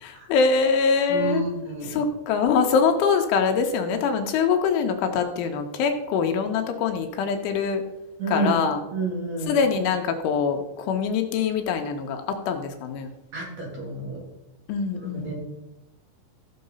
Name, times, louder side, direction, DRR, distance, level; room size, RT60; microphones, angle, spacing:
voice 1, 0.0-1.4 1.9-7.8 8.3-8.8 9.5-13.1 14.7-15.3, left 5 dB, 80° left, 4 dB, 3.4 m, -23 dB
voice 2, 1.1-2.0 6.2-6.3 8.2-8.6 8.9-9.6 13.3-14.2 15.1-15.3, right 3 dB, 40° right, -2 dB, 3.3 m, -29 dB
15.5 x 6.8 x 5.4 m, 0.97 s
omnidirectional pair, 5.8 m